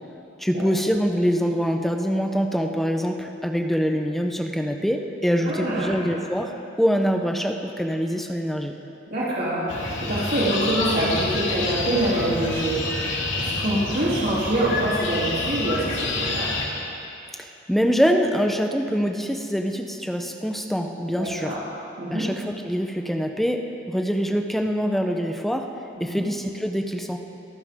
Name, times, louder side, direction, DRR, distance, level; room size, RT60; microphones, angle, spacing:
voice 1, 0.4-8.7 17.4-21.5 22.1-25.7 26.0-27.2, equal, ahead, 3 dB, 0.8 m, -24 dB
voice 2, 5.4-5.9 9.1-16.6 21.1-21.6 22.0-22.3 25.9-26.3, right 1 dB, 50° right, -8 dB, 3.3 m, -25 dB
sound 1, 9.7-16.7, left 2 dB, 75° left, 2.3 m, -28 dB
26.0 x 14.0 x 3.8 m, 2.7 s
head